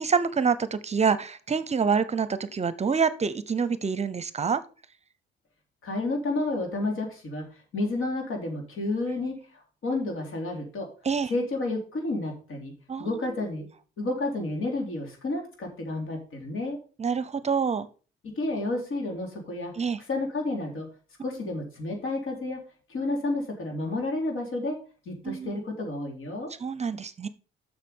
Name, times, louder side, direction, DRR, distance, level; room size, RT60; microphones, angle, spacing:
voice 1, 0.0-4.6 11.0-11.3 12.9-13.2 17.0-17.9 19.8-20.0 25.2-25.5 26.6-27.3, right 6 dB, 30° right, 15 dB, 0.7 m, -26 dB
voice 2, 5.8-7.4 7.7-9.4 9.8-10.9 11.3-12.7 13.0-13.7 14.0-16.8 18.2-19.7 20.0-20.9 21.2-22.6 22.9-24.8 25.1-26.5, left 2 dB, 70° left, 1 dB, 3.7 m, -30 dB
7.4 x 6.5 x 5.4 m, 0.37 s
cardioid pair, 105°, 21 cm